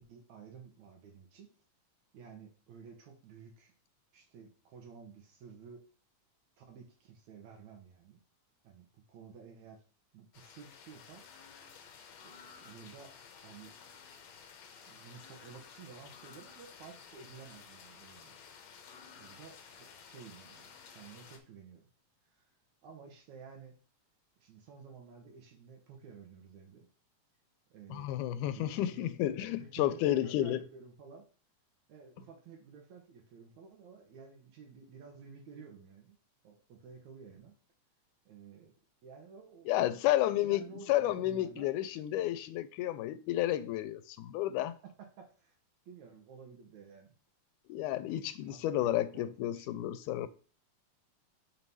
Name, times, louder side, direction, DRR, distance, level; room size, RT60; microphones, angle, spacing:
voice 1, 0.1-1.5 2.1-3.7 4.1-5.8 6.6-8.2 8.6-9.8 10.1-11.2 12.2-13.1 13.4-13.8 14.9-18.4 19.2-21.8 22.3-22.5 22.8-23.7 24.4-26.9 27.7-28.1 28.4-29.1 29.4-31.2 31.9-36.2 36.4-37.6 38.3-38.7 39.0-41.7 44.8-45.6 45.9-47.2 48.4-49.9, right 6 dB, 70° right, 2.3 m, -53 dB
sound 1, 10.3-21.4, left 6 dB, 70° left, 1.9 m, -54 dB
voice 2, 27.9-30.6 39.7-44.8 47.7-50.3, left 13 dB, 85° left, 2.1 m, -31 dB
5.6 x 3.2 x 5.3 m
omnidirectional pair, 3.5 m